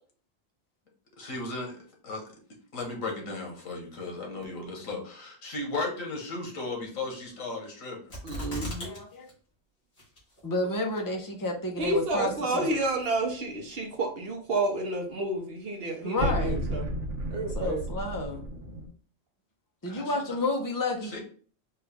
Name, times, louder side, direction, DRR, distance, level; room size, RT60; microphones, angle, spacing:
voice 1, 1.2-1.8 2.0-2.2 2.7-8.0 19.9-20.1 21.0-21.2, left 3 dB, 85° left, 0 dB, 1.6 m, -35 dB
sound 1, 8.1-9.0 9.3-9.4 10.0-10.4 11.0-11.1, equal, 55° left, 2.0 m, -36 dB
voice 2, 8.2-9.0 11.8-16.9 17.3-17.8, right 2 dB, 55° right, 1 dB, 0.9 m, -30 dB
voice 3, 8.8-9.3 10.4-12.7 16.0-16.7 17.6-18.4 19.8-21.1, left 2 dB, 20° left, 1 dB, 0.6 m, -31 dB
sound 2, 11.8-13.2 16.2-18.9, equal, 70° right, 1.1 m, -33 dB
4.4 x 2.5 x 3.4 m, 0.43 s
omnidirectional pair, 1.4 m